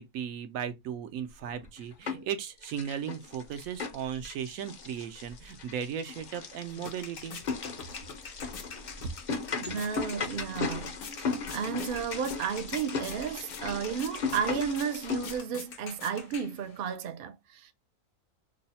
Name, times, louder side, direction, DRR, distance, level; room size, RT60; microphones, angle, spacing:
voice 1, 0.0-7.4, right 8 dB, 80° right, 1.1 m, -36 dB
sound 1, 1.5-2.3 2.6-15.4, left 5 dB, 50° left, 0.6 m, -37 dB
sound 2, 6.2-17.0, left 6 dB, 75° left, 1.2 m, -46 dB
voice 2, 9.6-17.7, right 7 dB, 60° right, 0.6 m, -33 dB
3.1 x 2.0 x 4.0 m
omnidirectional pair, 1.4 m